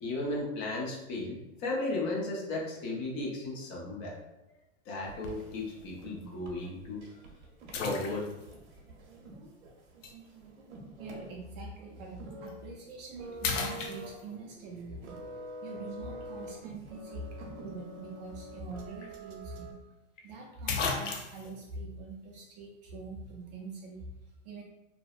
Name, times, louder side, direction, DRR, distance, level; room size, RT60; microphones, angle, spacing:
voice 1, 0.0-4.1 4.9-7.1 7.8-8.3, left 2 dB, 35° left, -3 dB, 0.7 m, -35 dB
sound 1, 5.0-19.7, right 1 dB, 75° right, 0.8 m, -47 dB
sound 2, 5.2-5.5 6.2-6.3 7.7-8.6 10.0-10.1 12.3-12.5 12.9-13.1 13.4-14.5 18.6-18.7 19.0-19.1 20.2-20.3 20.7-21.5, left 5 dB, 85° left, 0.5 m, -34 dB
voice 2, 11.0-15.2 15.6-19.8 20.2-24.6, right 3 dB, 35° right, -1 dB, 0.4 m, -44 dB
2.6 x 2.0 x 2.3 m, 0.97 s
hypercardioid pair, 135°, 37 cm